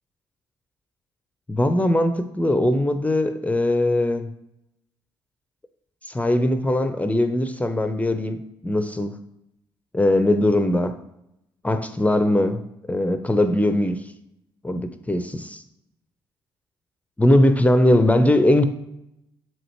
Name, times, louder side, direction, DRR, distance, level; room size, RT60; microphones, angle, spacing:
voice 1, 1.5-4.3 6.0-8.4 8.6-9.1 9.9-10.9 11.6-12.6 12.9-14.0 14.6-15.6 17.2-18.6, left 1 dB, 10° left, 9 dB, 0.6 m, -20 dB
7.5 x 4.9 x 3.1 m, 0.84 s
figure-of-eight pair, 45°, 13 cm